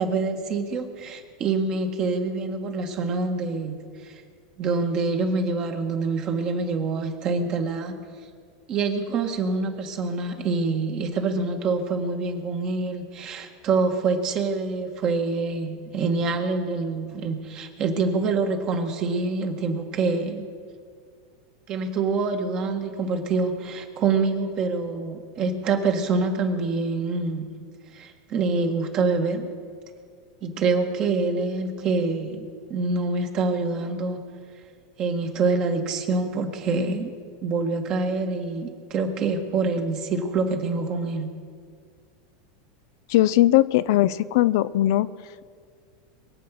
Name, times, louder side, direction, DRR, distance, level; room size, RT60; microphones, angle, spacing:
voice 1, 0.0-3.8 4.0-4.2 4.6-8.0 8.7-20.5 21.7-27.5 27.9-29.5 30.4-34.2 35.0-37.1 37.4-41.3, right 4 dB, 40° right, 4 dB, 1.8 m, -26 dB
voice 2, 43.1-45.1, left 15 dB, 70° left, 16 dB, 0.5 m, -19 dB
23.0 x 7.9 x 6.1 m, 2.1 s
supercardioid pair, 130°, 2 cm